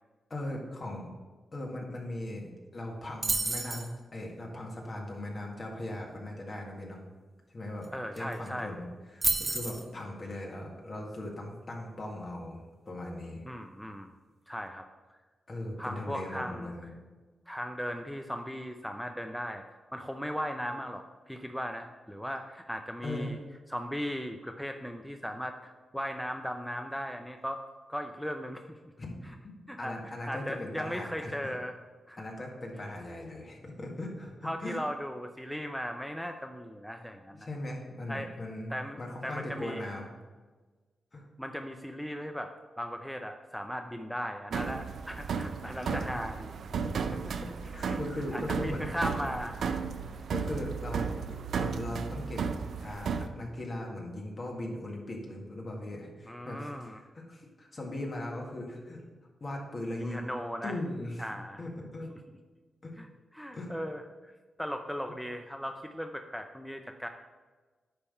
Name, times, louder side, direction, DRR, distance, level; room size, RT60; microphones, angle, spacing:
voice 1, 0.3-1.1 1.5-7.0 7.5-7.9 8.2-13.4 15.5-16.9 23.0-23.4 29.0-29.2 29.8-31.5 32.2-34.4 34.6-34.8 37.4-40.1 41.1-41.2 45.8-46.1 46.7-47.0 47.4-49.0 50.0-52.4 52.8-59.0 59.4-60.3 60.6-61.2 61.6-62.1 62.8-62.9 63.5-63.7, left 1 dB, 40° left, -1 dB, 1.8 m, -39 dB
sound 1, 3.2-3.9 7.8-7.9 8.2-8.5 9.2-9.8, right 3 dB, 35° right, 1.0 m, -30 dB
voice 2, 7.9-8.8 13.4-14.1 14.5-14.9 15.8-16.7 17.5-19.6 19.9-23.4 23.7-27.6 27.9-28.8 29.7-29.9 30.3-31.8 32.1-32.2 34.4-37.5 38.1-38.3 38.7-39.8 41.4-46.5 47.7-48.0 48.3-49.6 56.3-57.0 60.0-60.8 61.2-61.6 62.1-62.2 63.0-63.1 63.3-64.0 64.6-67.1, equal, 5° left, 5 dB, 0.5 m, -37 dB
sound 2, 44.5-53.3, right 6 dB, 75° right, 0.5 m, -34 dB
9.8 x 3.5 x 5.6 m, 1.3 s
cardioid pair, 75°, 0 cm